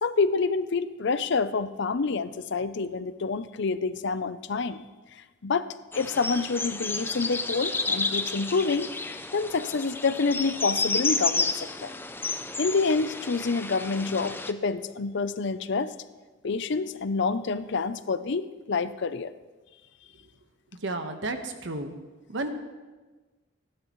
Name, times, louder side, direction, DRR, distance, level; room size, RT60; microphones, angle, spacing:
voice 1, 0.0-4.8 5.4-5.7 5.9-8.9 9.3-11.9 12.6-15.9 16.4-19.3, left 4 dB, 60° left, 13 dB, 0.6 m, -27 dB
sound 1, 5.9-14.5, left 3 dB, 10° left, 0.5 m, -31 dB
voice 2, 20.8-21.9 22.3-22.5, right 2 dB, 65° right, 6 dB, 1.3 m, -32 dB
29.0 x 11.5 x 3.1 m, 1.3 s
head